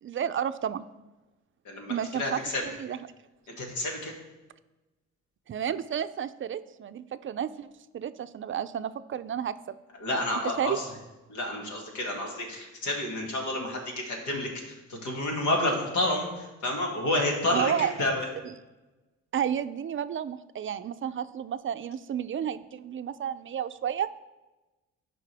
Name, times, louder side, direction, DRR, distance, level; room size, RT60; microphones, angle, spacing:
voice 1, 0.0-0.8 1.9-3.0 5.5-9.5 10.6-10.8 17.5-17.9 18.4-18.5 19.3-24.1, right 9 dB, 45° right, 12 dB, 0.4 m, -31 dB
voice 2, 1.6-2.6 3.5-4.1 10.0-10.8 11.3-18.3, left 1 dB, 90° left, 0 dB, 2.3 m, -30 dB
13.5 x 5.3 x 3.4 m, 1.1 s
cardioid pair, 90°, 30 cm